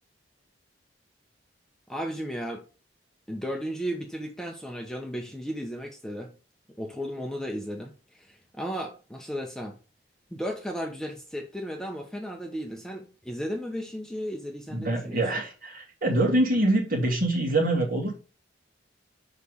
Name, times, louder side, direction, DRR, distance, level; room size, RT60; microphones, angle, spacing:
voice 1, 1.9-2.6 3.3-6.3 6.8-9.8 10.3-15.4, equal, 5° left, 0.8 m, -35 dB
voice 2, 14.7-18.2, right 1 dB, 50° right, 2.6 m, -25 dB
6.5 x 5.4 x 3.5 m
head